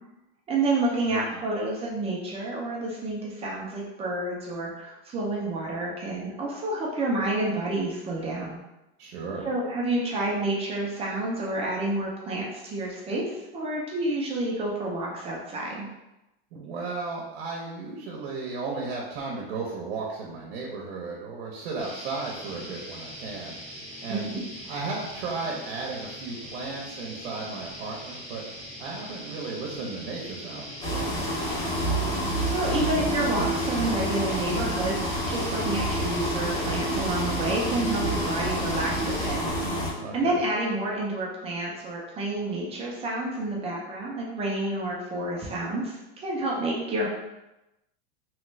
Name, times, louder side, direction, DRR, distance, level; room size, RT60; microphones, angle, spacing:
voice 1, 0.5-8.6 9.4-15.9 24.1-24.4 32.5-39.4 40.1-47.1, right 2 dB, 20° right, -3 dB, 0.6 m, -29 dB
voice 2, 1.0-1.4 9.0-9.5 16.5-23.6 24.0-24.3 24.7-28.4 28.8-31.1 40.0-40.4, right 4 dB, 75° right, -2 dB, 0.8 m, -35 dB
sound 1, 21.8-39.3, equal, 75° left, 1.5 m, -41 dB
sound 2, 30.8-39.9, right 1 dB, 45° left, 1.4 m, -28 dB
3.1 x 2.4 x 3.1 m, 0.93 s
supercardioid pair, 155°, 30 cm